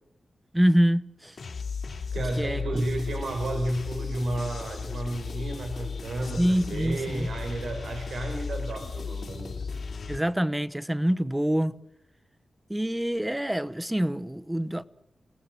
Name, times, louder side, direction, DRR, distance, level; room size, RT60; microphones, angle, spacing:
voice 1, 0.5-1.4 2.4-2.8 6.4-7.3 10.1-11.8 12.7-14.8, equal, 10° right, 0.9 m, -26 dB
sound 1, 1.4-10.2, left 5 dB, 65° left, 3.5 m, -35 dB
voice 2, 2.1-9.8, right 1 dB, 85° right, 4.3 m, -32 dB
28.5 x 18.5 x 7.7 m
wide cardioid pair, 90°, 0 cm